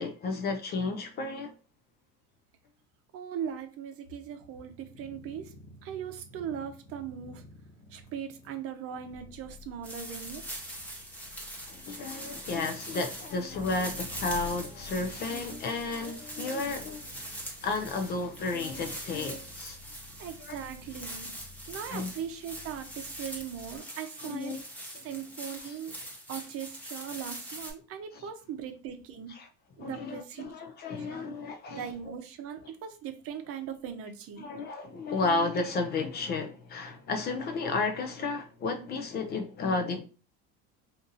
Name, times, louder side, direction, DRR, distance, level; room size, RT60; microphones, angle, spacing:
voice 1, 0.0-1.5 11.7-17.1 17.6-19.8 20.4-20.6 21.9-22.1 24.2-24.6 25.6-25.8 29.4-29.5 29.8-31.8 34.4-40.0, left 3 dB, 35° left, 0.4 m, -32 dB
voice 2, 3.1-5.5 5.8-7.4 7.9-10.7 20.2-21.3 21.7-24.5 25.0-25.9 26.3-29.3 29.8-30.5 31.0-31.4 31.7-34.5, right 8 dB, 50° right, 0.7 m, -39 dB
sound 1, 4.2-23.8, left 3 dB, 75° left, 1.2 m, -51 dB
sound 2, 9.8-27.7, right 1 dB, 5° left, 0.8 m, -43 dB
2.6 x 2.6 x 3.8 m
cardioid pair, 150°, 31 cm